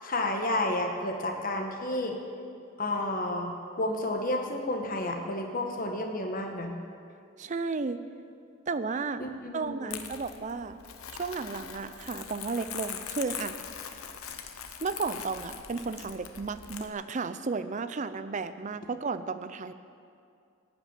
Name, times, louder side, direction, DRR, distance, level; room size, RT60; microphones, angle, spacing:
voice 1, 0.0-2.2 2.8-6.7 9.2-10.0, left 1 dB, 40° left, 3 dB, 1.1 m, -31 dB
voice 2, 7.4-8.0 8.7-9.2 9.5-10.8 11.2-13.6 14.8-19.7, right 4 dB, 35° right, 12 dB, 0.5 m, -33 dB
Crumpling crinkling, 9.9-16.9, left 8 dB, 90° left, 0.9 m, -41 dB
14.5 x 5.9 x 9.5 m, 2.4 s
head